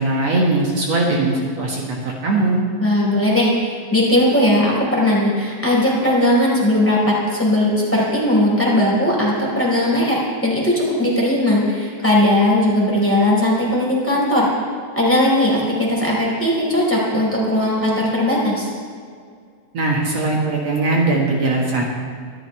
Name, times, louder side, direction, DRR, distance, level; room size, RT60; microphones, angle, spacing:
voice 1, 0.0-2.6 19.7-21.8, right 2 dB, 60° right, -2 dB, 2.7 m, -20 dB
voice 2, 2.8-14.5 15.0-18.7, left 1 dB, 5° left, -5 dB, 4.0 m, -18 dB
24.5 x 13.5 x 3.3 m, 2.1 s
omnidirectional pair, 3.4 m